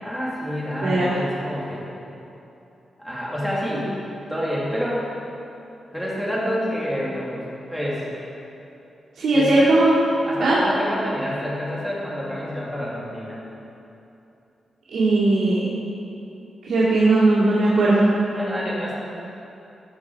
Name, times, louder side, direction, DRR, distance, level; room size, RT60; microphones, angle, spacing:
voice 1, 0.0-1.9 3.0-3.9 4.3-5.1 5.9-7.4 7.7-8.2 9.3-9.7 10.2-13.4 18.3-19.0, equal, ahead, -7 dB, 2.3 m, -28 dB
voice 2, 0.8-1.2 9.2-9.9 10.4-10.6 14.9-15.6 16.6-18.1, right 2 dB, 90° right, -11 dB, 2.3 m, -18 dB
14.0 x 5.9 x 4.7 m, 2.8 s
wide cardioid pair, 135°, 0 cm